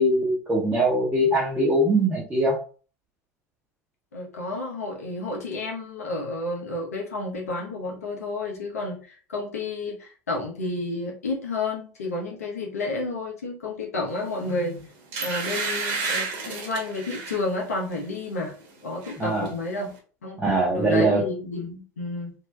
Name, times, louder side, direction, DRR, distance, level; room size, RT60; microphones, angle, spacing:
voice 1, 0.0-2.6 19.2-19.5 20.4-21.2, right 1 dB, 15° right, -6 dB, 0.9 m, -22 dB
voice 2, 4.1-14.8 15.2-18.5 18.8-19.9 20.2-22.3, left 2 dB, 80° left, -1 dB, 1.1 m, -31 dB
sound 1, 14.4-14.6 15.1-17.4 17.9-18.1 18.4-19.2 19.4-19.5, right 4 dB, 60° right, 1.1 m, -31 dB
3.2 x 2.8 x 2.3 m, 0.39 s
figure-of-eight pair, 75°, 8 cm